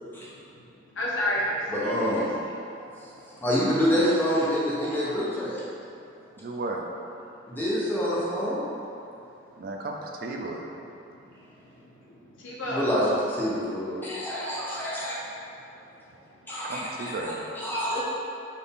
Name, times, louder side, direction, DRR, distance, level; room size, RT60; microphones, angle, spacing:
voice 1, 0.0-2.5 2.9-3.1 11.0-11.9 12.4-13.0 16.3-16.4 17.9-18.0, equal, 80° left, -6 dB, 0.8 m, -33 dB
voice 2, 1.7-2.3 3.0-5.6 7.5-8.6 12.7-15.2 16.5-16.8 17.1-18.0, equal, 10° left, -8 dB, 0.7 m, -27 dB
voice 3, 6.4-6.8 9.6-10.7 16.6-17.5, right 2 dB, 50° right, 0 dB, 0.3 m, -34 dB
4.0 x 2.6 x 3.5 m, 2.6 s
head